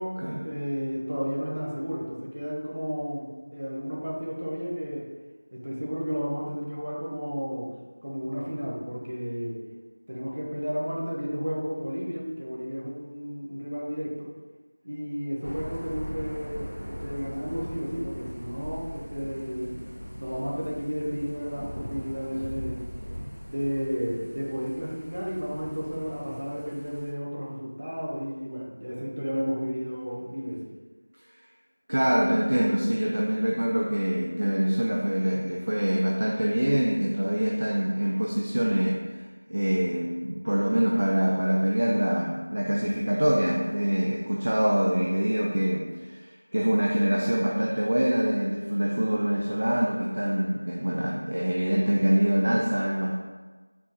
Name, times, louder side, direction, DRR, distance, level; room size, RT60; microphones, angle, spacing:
voice 1, 0.0-5.1 5.5-7.7 8.0-9.6 10.1-14.3 14.8-19.8 20.2-22.9 23.5-30.6, equal, 55° right, -4 dB, 1.1 m, -32 dB
Thunder / Rain, 15.4-27.1, equal, 75° left, 0.9 m, -40 dB
voice 2, 31.9-39.2 39.5-53.1, equal, 40° right, -2 dB, 0.3 m, -25 dB
4.3 x 2.4 x 4.3 m, 1.3 s
figure-of-eight pair, 180°, 0 cm